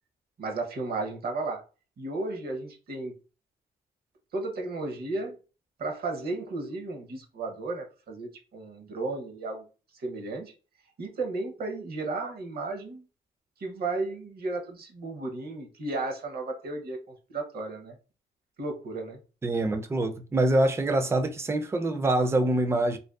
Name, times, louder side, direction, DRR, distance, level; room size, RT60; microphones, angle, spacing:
voice 1, 0.4-1.6 2.0-3.2 4.3-5.4 5.8-9.7 9.9-10.5 11.0-13.1 13.6-18.0 18.6-19.2, right 3 dB, 50° right, 0.7 m, -34 dB
voice 2, 19.4-23.0, right 2 dB, 15° right, 0.3 m, -25 dB
2.6 x 2.2 x 2.2 m
cardioid pair, 90°, 20 cm